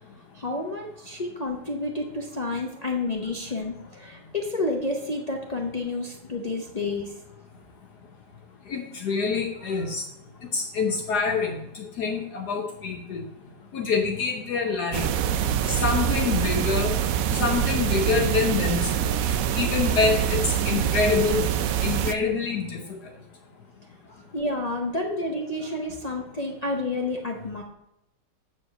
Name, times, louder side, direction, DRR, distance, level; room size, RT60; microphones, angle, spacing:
voice 1, 0.3-7.2 24.1-27.6, left 2 dB, 90° left, 0 dB, 0.3 m, -30 dB
voice 2, 8.7-10.0 10.5-13.2 13.7-15.1 15.7-17.0 17.3-19.1 19.5-21.5 21.8-23.0, left 5 dB, 65° left, 2 dB, 1.3 m, -26 dB
sound 1, 14.9-22.1, right 9 dB, 75° right, 0.8 m, -25 dB
8.1 x 4.8 x 6.4 m, 0.83 s
omnidirectional pair, 2.0 m